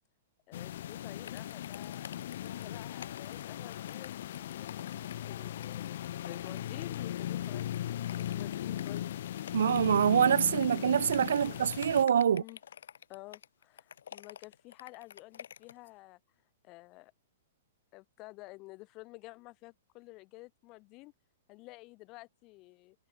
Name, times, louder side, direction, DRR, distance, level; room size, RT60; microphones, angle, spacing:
sound 1, 0.5-12.0, left 12 dB, 60° left, 1.6 m, -38 dB
voice 1, 0.5-4.7 5.3-9.1 11.4-11.7 12.3-12.6 13.1-16.2 16.6-17.1 17.9-21.1 21.5-23.0, left 23 dB, 30° left, 7.1 m, -51 dB
sound 2, 1.3-15.9, left 8 dB, 80° left, 4.0 m, -50 dB
voice 2, 9.5-12.4, right 8 dB, 85° right, 0.5 m, -25 dB
hypercardioid pair, 155°, 0 cm